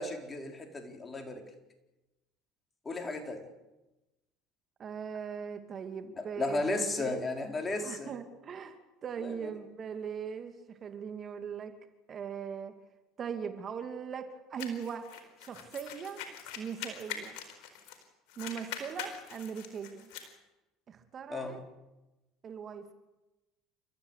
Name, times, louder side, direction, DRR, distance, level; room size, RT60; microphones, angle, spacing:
voice 1, 0.0-1.4 2.8-3.5 6.2-8.1 9.2-9.5 21.3-21.6, left 2 dB, 25° left, 4 dB, 4.3 m, -34 dB
voice 2, 4.8-7.2 7.8-11.7 12.1-12.8 13.2-15.1 15.4-16.2 16.6-17.4 18.4-20.1 20.9-21.6 22.4-22.9, right 7 dB, 40° right, 7 dB, 2.6 m, -40 dB
sound 1, 14.6-18.0 18.3-20.3, left 8 dB, 70° left, 4.4 m, -43 dB
29.0 x 14.0 x 8.3 m, 1.0 s
hypercardioid pair, 80°, 0 cm